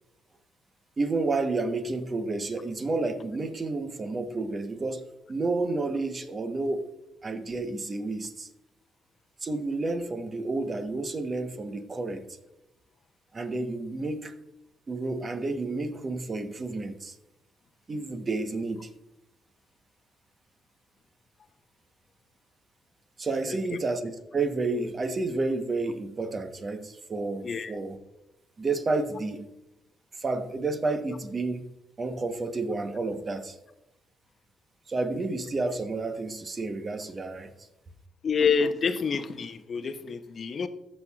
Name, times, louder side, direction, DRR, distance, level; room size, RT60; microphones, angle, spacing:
voice 1, 1.0-5.0 5.3-6.9 7.2-8.5 9.4-12.3 13.3-14.3 14.9-17.2 17.9-18.9 23.2-28.0 28.6-29.5 30.1-31.7 32.0-33.6 34.9-37.5, right 3 dB, 35° right, 1.0 m, -30 dB
voice 2, 27.4-27.7 38.2-40.7, left 6 dB, 45° left, 0.7 m, -27 dB
15.0 x 6.5 x 2.3 m
cardioid pair, 90°, 0 cm